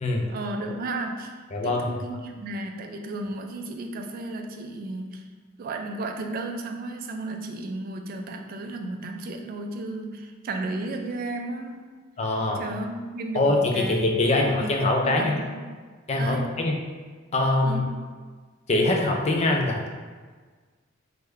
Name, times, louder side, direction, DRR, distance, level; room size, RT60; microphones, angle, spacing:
voice 1, 0.3-1.4 1.6-5.2 5.6-11.8 12.5-14.1 14.4-14.8 15.0-15.6 16.2-16.5 17.6-18.0, right 2 dB, 45° right, 4 dB, 0.3 m, -34 dB
voice 2, 1.5-1.9 12.2-12.6 13.3-15.4 16.1-16.8 17.3-17.8 18.7-19.9, left 2 dB, 35° left, 1 dB, 0.4 m, -23 dB
3.4 x 2.1 x 3.2 m, 1.5 s
head